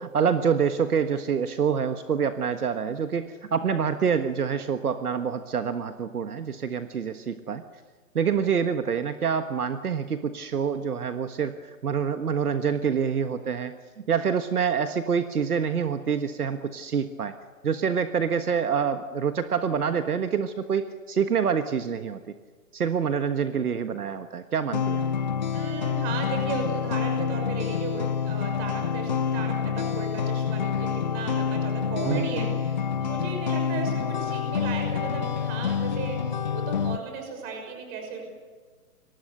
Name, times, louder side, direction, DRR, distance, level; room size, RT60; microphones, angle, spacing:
voice 1, 0.0-7.6 8.1-11.6 11.8-17.3 17.6-22.2 22.7-25.0 32.0-32.5, right 7 dB, 70° right, 8 dB, 1.6 m, -26 dB
sound 1, 24.7-37.0, left 7 dB, 30° left, 0.7 m, -27 dB
voice 2, 25.5-38.2, right 4 dB, 20° right, 4 dB, 6.0 m, -36 dB
30.0 x 23.0 x 6.8 m, 1.4 s
hypercardioid pair, 155°, 46 cm